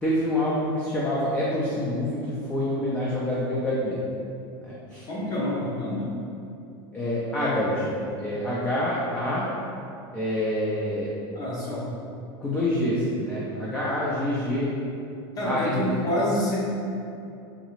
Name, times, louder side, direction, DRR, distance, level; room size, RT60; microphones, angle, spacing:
voice 1, 0.0-4.0 4.6-5.1 6.9-9.5 10.1-11.1 12.4-14.8 15.4-16.0, left 1 dB, 10° left, -7 dB, 0.4 m, -27 dB
voice 2, 5.1-6.1 11.3-11.9 15.4-16.7, left 1 dB, 30° left, -6 dB, 1.0 m, -27 dB
3.7 x 3.1 x 3.1 m, 2.7 s
supercardioid pair, 150°, 12 cm